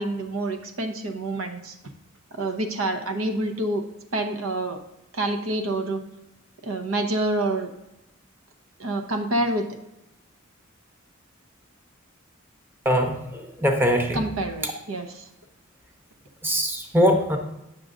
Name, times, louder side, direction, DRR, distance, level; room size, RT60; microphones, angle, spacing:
voice 1, 0.0-1.7 2.3-3.8 4.1-4.8 5.1-6.0 6.6-7.7 8.8-9.7 14.1-15.3, right 2 dB, 75° right, 5 dB, 0.8 m, -27 dB
voice 2, 12.8-14.2 14.6-14.7 16.4-17.4, equal, 10° right, 3 dB, 0.8 m, -22 dB
9.0 x 6.2 x 2.5 m, 0.91 s
head